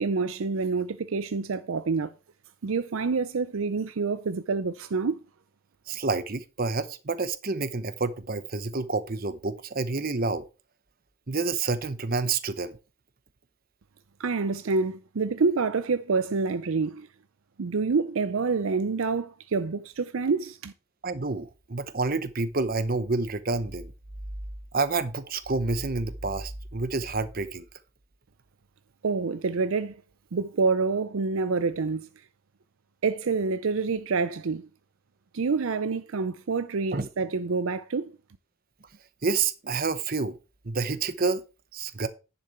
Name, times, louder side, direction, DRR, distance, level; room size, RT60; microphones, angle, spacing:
voice 1, 0.0-2.1 2.6-5.2 14.2-17.1 17.6-20.7 29.0-29.9 30.3-32.1 33.0-34.7 35.3-38.2, right 4 dB, 70° right, 0.5 m, -27 dB
voice 2, 5.9-10.5 11.3-12.8 21.0-23.9 24.7-27.7 36.9-37.1 39.2-40.4 40.6-41.4 41.7-42.1, right 3 dB, 40° right, 0.8 m, -28 dB
10.5 x 6.9 x 4.4 m
head